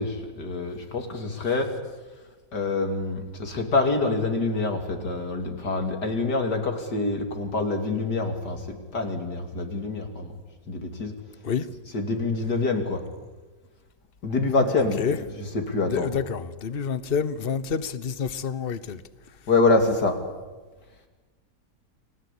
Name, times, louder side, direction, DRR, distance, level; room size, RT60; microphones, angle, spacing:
voice 1, 0.0-1.7 2.5-10.3 10.7-11.1 11.9-13.0 14.2-16.1 19.5-20.2, left 3 dB, 70° left, 3.3 m, -26 dB
voice 2, 14.8-15.2 15.8-19.0, left 6 dB, 40° left, 1.1 m, -28 dB
29.5 x 20.5 x 8.5 m
omnidirectional pair, 1.8 m